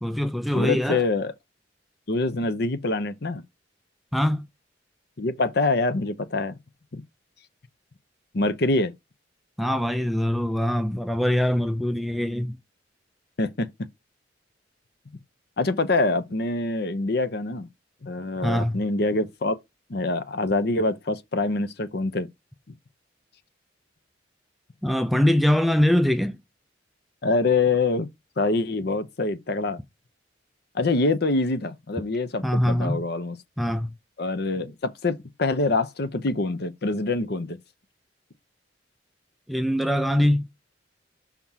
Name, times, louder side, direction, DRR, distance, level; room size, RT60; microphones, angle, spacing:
voice 1, 0.0-1.0 4.1-4.5 9.6-12.6 18.4-18.8 24.8-26.4 32.4-33.0 33.6-33.9 39.5-40.5, left 1 dB, ahead, 0.4 m, -23 dB
voice 2, 0.5-1.3 2.1-3.4 5.2-6.5 6.9-7.0 8.3-8.9 13.4-13.7 15.6-17.7 18.0-19.5 19.9-22.3 27.2-28.1 28.4-29.8 30.7-33.4 34.2-37.6, left 3 dB, 60° left, 0.7 m, -25 dB
5.9 x 3.6 x 5.6 m
head